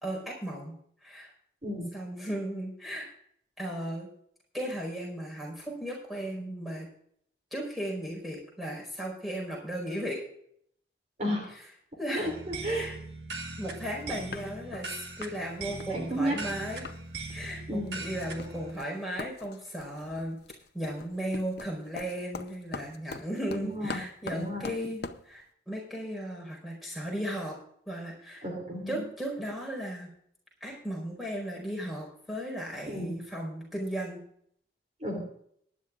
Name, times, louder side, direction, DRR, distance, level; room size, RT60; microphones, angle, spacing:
voice 1, 0.0-1.3 1.9-3.1 3.6-4.1 4.5-6.9 7.5-10.2 12.0-12.3 12.6-12.9 13.6-14.9 15.2-16.8 17.3-20.4 20.7-27.6 27.9-28.4 28.9-30.1 30.6-34.2, right 1 dB, ahead, -3 dB, 4.8 m, -36 dB
voice 2, 11.2-11.5 12.1-12.9 15.9-16.4 17.7-18.0 23.5-24.0 24.3-24.7 28.4-29.0 32.9-33.2 35.0-35.3, equal, 40° right, 0 dB, 3.1 m, -32 dB
sound 1, 12.2-18.7, right 2 dB, 70° right, 1.6 m, -40 dB
sound 2, 14.0-14.1 14.3-14.9 15.2-15.4 15.6-17.0 17.3-17.6 17.9-25.3, left 3 dB, 60° left, 0.7 m, -43 dB
23.0 x 11.0 x 2.5 m, 0.67 s
head